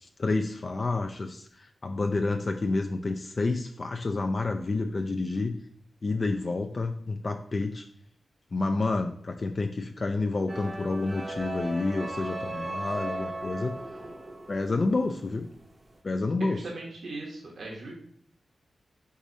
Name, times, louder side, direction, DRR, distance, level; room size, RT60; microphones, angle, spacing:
voice 1, 0.0-5.6 6.0-7.9 8.5-13.8 14.5-15.5 16.0-16.6, left 3 dB, 45° left, 4 dB, 0.3 m, -29 dB
sound 1, 10.5-15.6, right 1 dB, 30° right, 0.7 m, -37 dB
voice 2, 16.4-17.9, right 2 dB, 70° right, -2 dB, 1.0 m, -39 dB
4.8 x 3.9 x 2.7 m, 0.63 s
wide cardioid pair, 95°, 0 cm